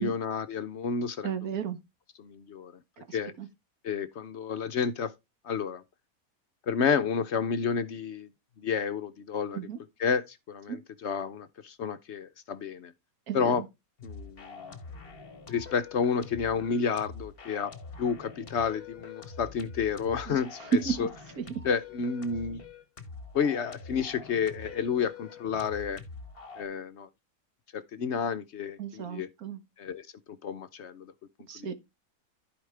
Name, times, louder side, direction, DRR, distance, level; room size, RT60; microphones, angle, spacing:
voice 1, 0.0-1.3 2.2-2.7 3.1-3.3 3.8-5.1 5.4-5.8 6.7-8.3 8.6-9.6 10.0-12.9 13.3-13.6 14.0-14.7 15.5-17.7 18.0-21.1 21.6-22.6 23.3-26.0 26.6-27.1 27.7-29.3 29.8-30.1 30.4-31.1 31.6-31.7, left 6 dB, 60° left, 0.8 m, -30 dB
voice 2, 1.2-1.8 3.1-3.5 9.5-9.8 10.7-10.8 13.3-13.7 20.3-21.1 21.4-21.6 28.8-29.6 31.5-31.7, right 7 dB, 80° right, 1.7 m, -33 dB
sound 1, 14.0-26.6, left 4 dB, 45° left, 1.3 m, -45 dB
14.5 x 5.0 x 3.3 m
omnidirectional pair, 1.5 m